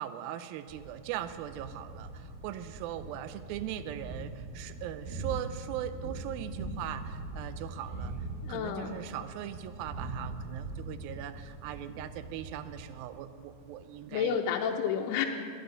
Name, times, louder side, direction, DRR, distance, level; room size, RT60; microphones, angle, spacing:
voice 1, 0.0-8.1 8.5-14.4, right 11 dB, 85° right, 11 dB, 2.1 m, -40 dB
Thunder, 0.7-14.0, right 2 dB, 60° right, 3.3 m, -42 dB
voice 2, 8.4-9.0 14.1-15.3, left 8 dB, 80° left, 1 dB, 2.7 m, -30 dB
20.0 x 14.0 x 3.9 m, 2.3 s
omnidirectional pair, 4.8 m